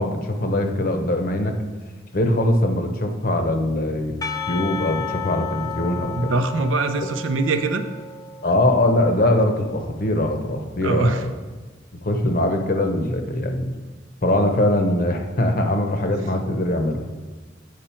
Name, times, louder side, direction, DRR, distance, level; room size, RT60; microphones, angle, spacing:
voice 1, 0.0-1.6 2.1-4.1 4.5-6.3 8.4-11.3 12.0-13.7 14.2-17.1, left 1 dB, 45° left, 5 dB, 0.8 m, -22 dB
Percussion / Church bell, 4.2-9.3, left 5 dB, 20° left, 0.4 m, -33 dB
voice 2, 6.1-7.9 10.8-11.3, right 2 dB, 80° right, 8 dB, 0.6 m, -22 dB
8.5 x 6.3 x 4.4 m, 1.4 s
head